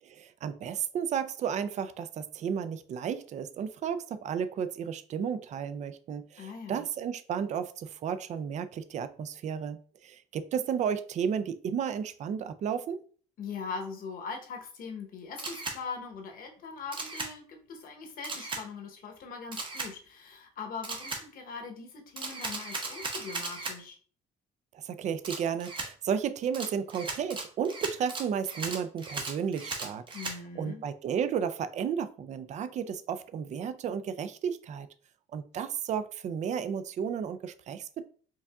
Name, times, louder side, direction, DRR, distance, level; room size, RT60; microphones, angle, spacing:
voice 1, 0.0-13.0 24.7-30.0 30.6-34.9 35.3-38.1, right 7 dB, 45° right, 0.4 m, -33 dB
voice 2, 6.4-6.9 13.4-24.0 30.1-30.8, left 5 dB, 60° left, 0.9 m, -41 dB
Camera, 15.4-15.8 16.9-17.3 18.2-18.6 19.5-19.9 20.8-21.2 22.2-23.8 25.2-25.9 26.5-30.4, right 3 dB, 30° right, 0.7 m, -37 dB
4.6 x 2.6 x 2.3 m
cardioid pair, 110°, 17 cm